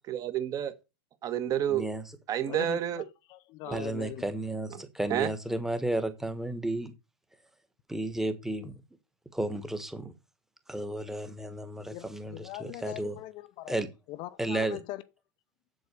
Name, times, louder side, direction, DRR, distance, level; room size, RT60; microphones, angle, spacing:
voice 1, 0.1-0.7 1.2-1.8 2.3-3.0 3.7-3.9 4.7-4.8 5.1-5.3, right 11 dB, 30° right, 1.3 m, -30 dB
voice 2, 1.7-2.0 3.7-6.9 7.9-8.7 9.3-10.1 10.7-13.1 13.7-13.9 14.4-14.8, right 1 dB, 5° right, 1.3 m, -33 dB
voice 3, 2.4-3.0 3.3-4.3 11.9-13.8 14.1-15.0, left 16 dB, 40° left, 0.6 m, -41 dB
8.0 x 7.9 x 6.8 m
supercardioid pair, 145°, 13 cm